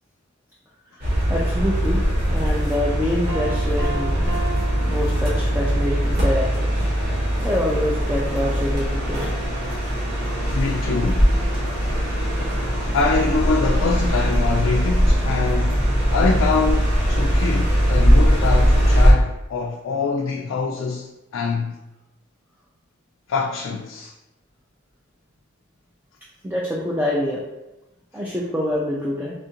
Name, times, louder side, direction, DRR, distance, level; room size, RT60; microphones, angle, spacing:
voice 1, 1.0-4.3 4.9-6.8 7.4-9.3 26.4-27.4 28.1-29.3, left 1 dB, 10° right, 0.4 m, -26 dB
sound 1, 1.0-19.1, equal, 55° right, 1.2 m, -20 dB
Piano, 3.3-5.8, right 2 dB, 75° right, 0.6 m, -34 dB
voice 2, 10.5-11.3 12.9-15.8 16.1-21.8 23.3-24.1, left 4 dB, 85° left, 0.3 m, -24 dB
4.2 x 2.5 x 2.8 m
head